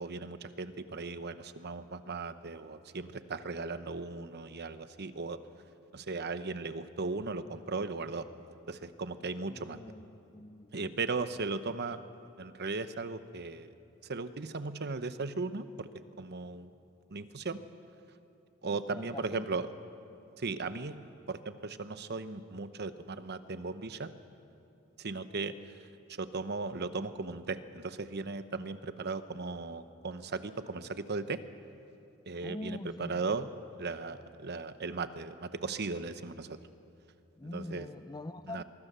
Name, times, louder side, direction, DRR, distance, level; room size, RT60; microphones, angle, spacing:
voice 1, 0.0-5.4 5.9-8.3 8.7-9.8 10.7-12.0 12.4-13.8 14.0-15.9 16.2-16.7 17.1-17.6 18.6-19.7 20.4-21.0 21.3-24.1 25.0-25.6 26.2-31.4 32.3-33.5 33.8-36.6 37.5-37.9 38.5-38.6, right 3 dB, 50° right, 0.9 m, -37 dB
voice 2, 9.5-11.0 18.6-19.7 32.4-33.4 37.4-38.6, left 1 dB, 20° left, 0.6 m, -44 dB
23.0 x 23.0 x 6.8 m
head